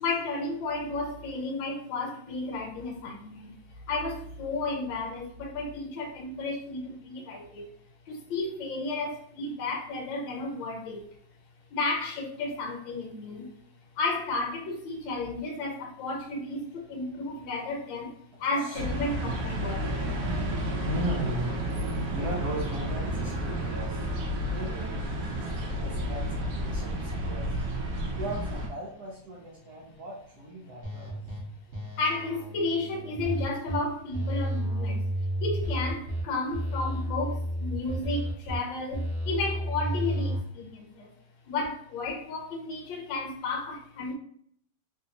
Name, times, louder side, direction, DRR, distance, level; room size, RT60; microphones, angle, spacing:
voice 1, 0.0-7.7 8.1-11.1 11.7-13.5 14.0-19.9 22.0-22.1 30.9-31.1 32.0-35.1 35.4-41.1 41.5-44.1, left 3 dB, 75° left, 3 dB, 1.2 m, -33 dB
sound 1, 18.7-28.7, equal, 90° right, 0.7 m, -31 dB
voice 2, 20.8-21.6 22.1-24.0 24.4-27.6 28.1-31.2, right 1 dB, 65° right, -5 dB, 1.0 m, -37 dB
sound 2, 30.8-31.4 31.7-33.8 34.1-36.2 36.5-38.6 38.9-40.4, right 1 dB, 45° right, 1.0 m, -31 dB
3.3 x 2.7 x 2.8 m, 0.63 s
omnidirectional pair, 2.3 m